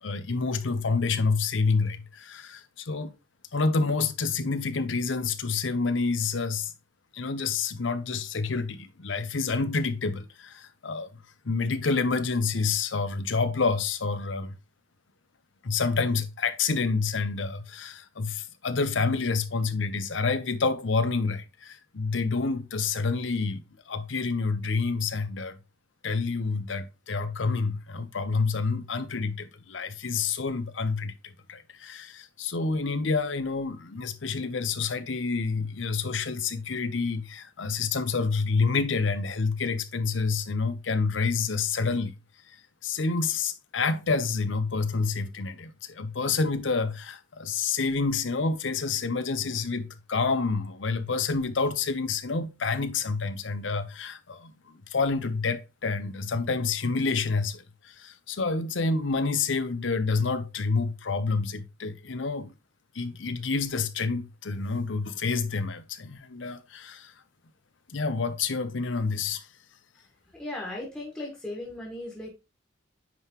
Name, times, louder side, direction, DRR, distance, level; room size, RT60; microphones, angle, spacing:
voice 1, 0.0-3.1 3.5-6.7 7.1-14.5 15.6-25.6 26.0-42.1 42.8-62.5 62.9-67.1 67.9-69.5, left 4 dB, 75° left, 0.7 m, -28 dB
voice 2, 70.3-72.3, left 1 dB, 5° left, 1.6 m, -37 dB
9.2 x 3.8 x 2.9 m
head